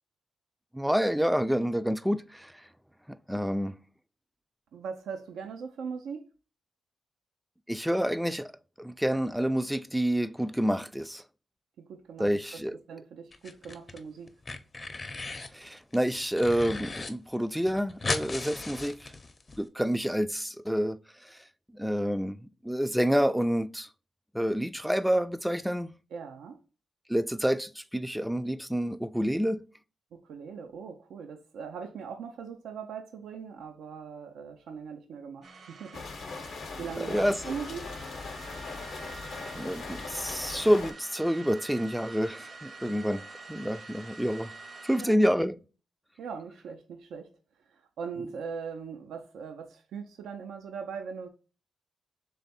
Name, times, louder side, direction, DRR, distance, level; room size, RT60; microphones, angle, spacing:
voice 1, 0.7-2.5 3.3-3.7 7.7-8.5 8.8-11.2 12.2-12.8 15.5-19.1 19.6-21.0 21.7-22.4 22.6-23.9 24.3-25.9 27.1-29.7 37.0-37.4 39.5-43.2 43.5-44.5 44.9-45.6, equal, 5° right, 0.4 m, -28 dB
voice 2, 4.7-6.2 11.8-12.3 12.5-12.6 12.9-14.3 26.1-26.6 30.1-36.0 36.8-37.9 42.9-43.0 45.0-45.2 46.2-47.3 47.7-51.3, right 6 dB, 85° right, 0.5 m, -40 dB
sound 1, 13.3-14.0 14.3-15.5 15.9-17.1 17.4-17.5 17.7-19.6, left 3 dB, 40° left, 0.6 m, -36 dB
sound 2, 35.4-45.1, right 4 dB, 55° right, 0.9 m, -47 dB
sound 3, 35.9-40.9, left 4 dB, 70° left, 0.7 m, -40 dB
3.4 x 3.3 x 4.1 m
cardioid pair, 65°, 0 cm